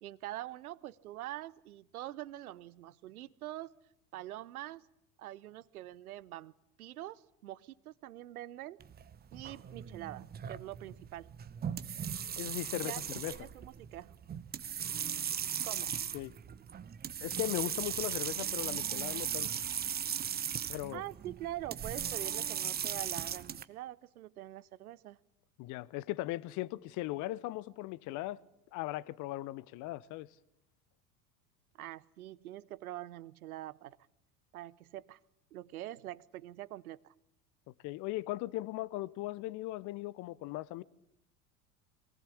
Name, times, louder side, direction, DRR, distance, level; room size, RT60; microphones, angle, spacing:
voice 1, 0.0-3.7 4.1-4.9 5.2-6.5 6.8-8.8 9.3-11.3 12.8-13.0 13.3-14.2 15.6-15.9 20.9-25.2 31.7-34.0 34.5-35.2 35.5-37.1, right 14 dB, 75° right, 0.8 m, -44 dB
sound 1, 8.8-23.6, right 8 dB, 20° right, 0.9 m, -38 dB
voice 2, 12.4-13.5 16.1-16.3 17.2-19.5 20.7-21.0 25.6-28.4 28.7-30.3 37.8-40.8, left 17 dB, 40° left, 0.8 m, -38 dB
23.5 x 18.5 x 8.5 m
figure-of-eight pair, 80°, 45 cm